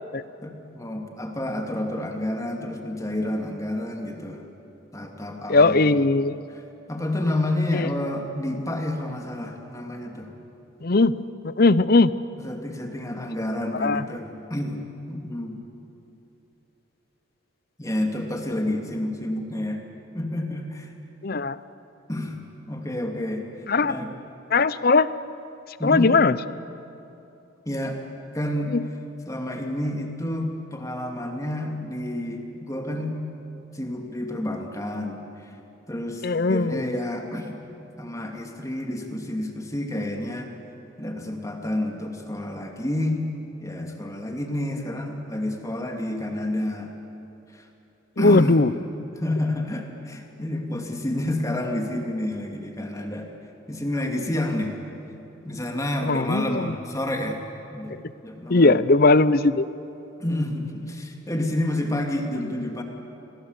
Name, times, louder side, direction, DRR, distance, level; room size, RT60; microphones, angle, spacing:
voice 1, 0.4-4.4 4.9-5.9 6.9-10.3 12.4-14.8 15.1-15.6 17.8-19.8 20.1-20.9 22.1-22.4 22.7-23.4 23.8-24.1 25.8-26.1 27.7-28.0 28.3-28.7 29.3-33.2 33.7-35.5 35.9-37.6 38.0-40.5 41.0-43.2 43.6-46.9 47.5-47.7 48.2-48.6 48.9-53.3 53.7-54.7 55.4-57.4 57.7-58.8 60.2-62.8, left 1 dB, 15° left, 3 dB, 2.6 m, -29 dB
voice 2, 5.5-6.4 7.7-7.9 10.8-12.1 13.7-14.0 21.2-21.6 23.7-24.0 24.5-25.1 25.8-26.4 28.7-28.8 36.2-36.9 48.2-48.7 56.0-56.7 58.5-59.7, left 3 dB, 50° left, 16 dB, 0.7 m, -19 dB
30.0 x 22.0 x 8.2 m, 2.9 s
head